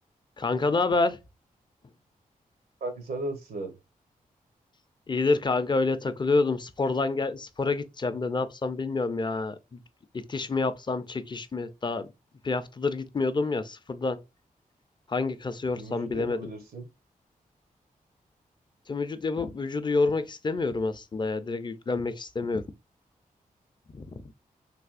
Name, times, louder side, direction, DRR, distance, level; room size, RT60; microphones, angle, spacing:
voice 1, 0.4-1.2 5.1-9.8 10.1-12.1 12.4-14.2 15.1-16.5 18.9-22.7 23.9-24.3, left 3 dB, 30° left, 0.4 m, -28 dB
voice 2, 2.8-3.7 15.8-16.8, right 2 dB, 85° right, 0.8 m, -36 dB
3.3 x 2.7 x 2.4 m
cardioid pair, 55°, 15 cm